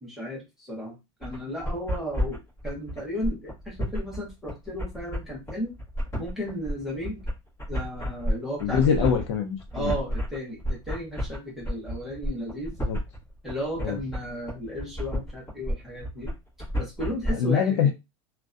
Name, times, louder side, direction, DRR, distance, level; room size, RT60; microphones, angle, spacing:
voice 1, 0.0-5.7 6.2-7.2 7.7-9.1 9.7-12.7 13.4-16.3 16.8-17.9, equal, ahead, -4 dB, 0.6 m, -34 dB
sound 1, 1.2-17.3, equal, 15° left, 1.0 m, -31 dB
voice 2, 8.6-10.0 12.8-13.0 13.8-14.0 17.3-17.9, left 7 dB, 60° left, 6 dB, 0.6 m, -24 dB
2.5 x 2.1 x 2.4 m, 0.23 s
supercardioid pair, 180°, 16 cm